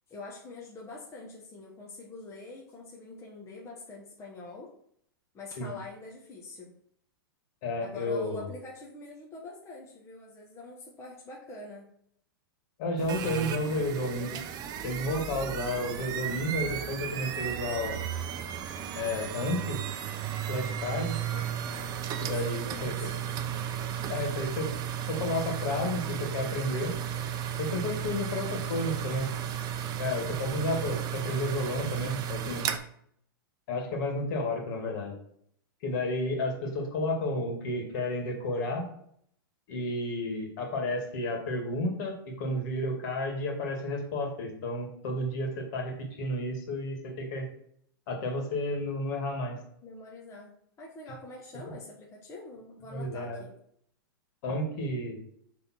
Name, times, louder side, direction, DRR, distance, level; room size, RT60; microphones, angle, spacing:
voice 1, 0.1-4.7 5.3-6.7 7.8-11.9 21.3-21.4 22.3-23.2 49.8-53.5, left 2 dB, 20° left, -3 dB, 1.3 m, -45 dB
voice 2, 7.6-8.5 12.8-14.4 14.8-18.0 18.9-19.8 20.5-21.2 22.2-23.1 24.1-24.7 25.1-27.0 27.6-29.3 30.0-32.7 33.7-35.1 35.8-38.9 39.7-47.5 48.1-49.6 52.9-53.5 54.4-55.2, left 1 dB, 55° left, 1 dB, 2.2 m, -32 dB
sound 1, 13.0-32.8, right 9 dB, 30° right, 0.6 m, -34 dB
7.0 x 3.7 x 4.4 m, 0.67 s
hypercardioid pair, 120°, 12 cm